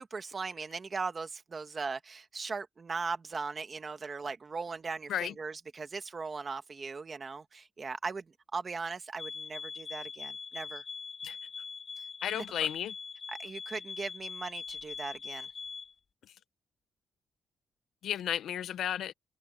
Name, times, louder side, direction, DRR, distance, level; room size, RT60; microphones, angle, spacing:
voice 1, 0.0-8.2 8.5-10.8 12.3-12.7 13.3-15.5, right 4 dB, 30° right, 1.4 m, -39 dB
sound 1, 9.2-15.9, left 5 dB, 40° left, 1.8 m, -42 dB
voice 2, 12.2-12.9 18.0-19.1, left 10 dB, 75° left, 0.5 m, -33 dB
open air
wide cardioid pair, 160°, 0 cm